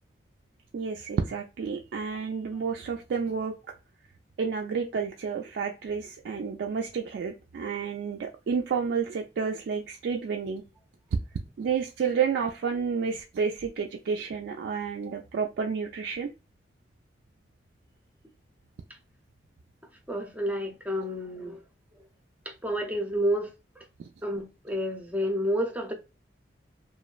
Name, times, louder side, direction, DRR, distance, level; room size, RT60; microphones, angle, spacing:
voice 1, 0.7-3.5 4.4-10.6 11.6-16.3 24.0-24.1, right 6 dB, 75° right, 0.3 m, -30 dB
voice 2, 20.1-21.6 22.6-23.5 24.2-25.9, equal, 10° right, 0.5 m, -29 dB
3.0 x 2.2 x 2.3 m
head